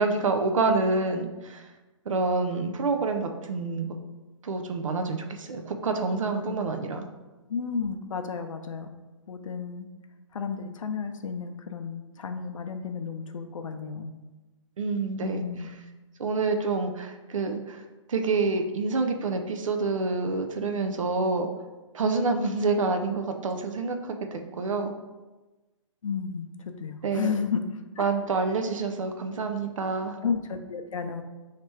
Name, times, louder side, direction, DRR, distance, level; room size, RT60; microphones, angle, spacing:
voice 1, 0.0-1.6 2.1-3.9 4.4-7.1 14.8-15.4 16.2-17.8 18.1-21.5 21.9-24.9 27.0-27.4 28.0-30.2, right 3 dB, 75° right, 5 dB, 0.6 m, -27 dB
voice 2, 6.4-6.7 7.5-8.9 9.3-9.9 10.3-14.1 15.2-15.7 26.0-26.5 26.8-27.6 28.0-28.1 30.2-31.2, left 6 dB, 80° left, 7 dB, 0.6 m, -32 dB
3.2 x 2.9 x 4.6 m, 1.2 s
hypercardioid pair, 165°, 17 cm